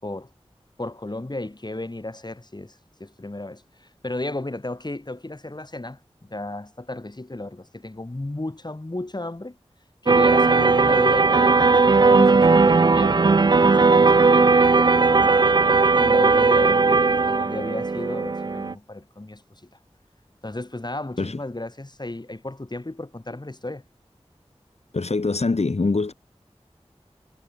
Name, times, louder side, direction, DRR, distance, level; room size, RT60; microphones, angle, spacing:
voice 1, 0.8-9.6 10.0-15.4 15.9-19.7 20.4-23.8, left 2 dB, 40° left, 4.5 m, -34 dB
sound 1, 10.1-18.7, right 4 dB, 40° right, 0.4 m, -17 dB
voice 2, 24.9-26.1, left 3 dB, 70° left, 1.5 m, -23 dB
wide cardioid pair, 60°, 11 cm